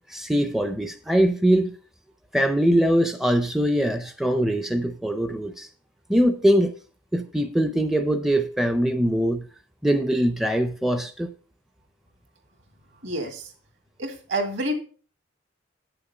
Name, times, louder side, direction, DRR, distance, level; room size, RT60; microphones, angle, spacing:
voice 1, 0.1-1.7 2.3-5.7 6.1-6.7 7.1-9.5 9.8-11.3, equal, ahead, 0.4 m, -22 dB
voice 2, 13.0-13.4 14.0-14.7, right 1 dB, 65° right, 2.2 m, -28 dB
9.1 x 6.9 x 5.3 m
head